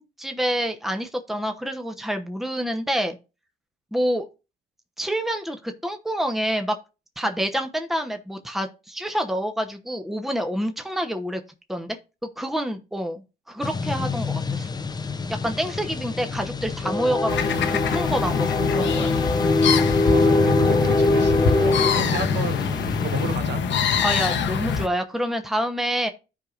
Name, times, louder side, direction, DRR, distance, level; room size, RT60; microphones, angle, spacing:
voice 1, 0.0-3.2 3.9-4.2 5.0-6.8 7.2-11.4 11.7-12.0 12.4-14.7 15.3-19.1 24.0-26.1, equal, ahead, 0.9 m, -27 dB
sound 1, 13.6-23.4, left 2 dB, 20° left, 0.6 m, -23 dB
sound 2, 17.3-24.9, left 6 dB, 65° left, 1.0 m, -25 dB
voice 2, 20.1-22.7 23.0-23.6, right 5 dB, 60° right, 1.3 m, -32 dB
14.0 x 4.8 x 2.5 m
cardioid pair, 90°, 20 cm